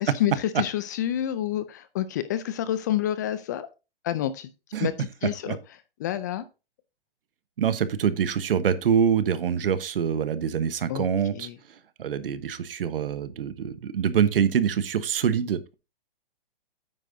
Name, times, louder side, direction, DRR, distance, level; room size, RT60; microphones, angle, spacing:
voice 1, 0.0-3.7 4.0-4.5 4.8-5.6 6.0-6.4 10.9-11.1 11.3-11.5, left 12 dB, 20° left, 0.4 m, -28 dB
voice 2, 7.6-11.5 12.0-15.7, right 8 dB, 65° right, 1.2 m, -25 dB
9.3 x 9.0 x 2.7 m
hypercardioid pair, 145°, 30 cm